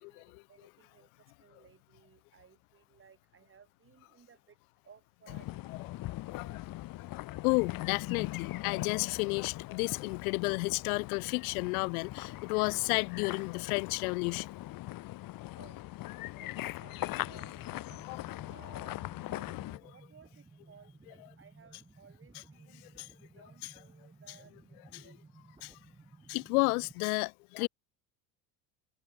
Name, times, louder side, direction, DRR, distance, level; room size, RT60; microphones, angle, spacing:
voice 1, 0.0-4.6 4.8-6.0 6.4-6.6 15.6-15.8 16.3-16.5 16.8-19.5 19.9-22.9 23.3-24.5 25.0-25.2, right 6 dB, 30° right, 4.5 m, -60 dB
sound 1, 5.3-19.8, left 17 dB, 50° left, 1.1 m, -40 dB
voice 2, 6.3-6.6 7.0-14.5 18.1-18.2 22.8-23.1 23.6-23.7 24.9-25.1 25.6-25.8 26.3-27.7, left 29 dB, 80° left, 0.6 m, -32 dB
sound 2, 16.9-26.9, right 3 dB, 10° right, 1.6 m, -57 dB
supercardioid pair, 95°, 43 cm